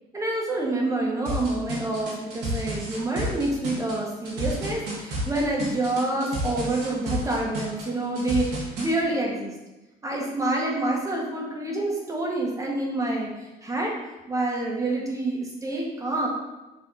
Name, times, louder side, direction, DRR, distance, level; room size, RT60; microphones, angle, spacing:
voice 1, 0.1-9.5 10.0-13.9 14.3-16.3, right 2 dB, 20° right, -2 dB, 1.5 m, -27 dB
sound 1, 1.2-8.9, equal, 85° right, 2.0 m, -31 dB
6.9 x 3.4 x 4.2 m, 1.1 s
cardioid pair, 110°, 17 cm